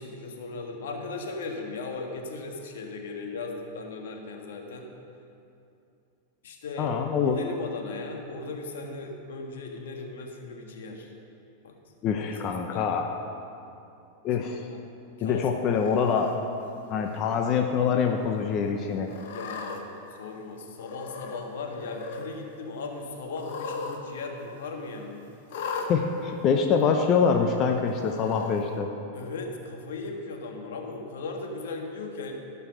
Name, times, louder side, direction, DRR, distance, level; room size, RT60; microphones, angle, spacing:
voice 1, 0.0-4.9 6.4-6.9 7.2-11.1 11.6-11.7 12.2-13.0 14.7-14.8 15.2-15.5 15.9-16.0 19.3-19.9 20.2-25.2 29.1-32.3, left 3 dB, 80° left, 2 dB, 1.6 m, -37 dB
voice 2, 6.8-7.4 12.0-13.2 14.2-14.7 15.2-16.3 16.9-19.1 25.9-28.9, left 6 dB, 35° left, 3 dB, 0.8 m, -25 dB
Cat, 15.7-16.3 17.0-17.5 17.9-18.0 19.1-19.8 20.8-21.4 21.7-22.3 23.3-24.0 24.3-24.4 25.5-25.9 26.8-26.9 28.0-28.6, left 5 dB, 65° left, 1.2 m, -37 dB
15.5 x 5.6 x 6.3 m, 2.7 s
supercardioid pair, 135°, 0 cm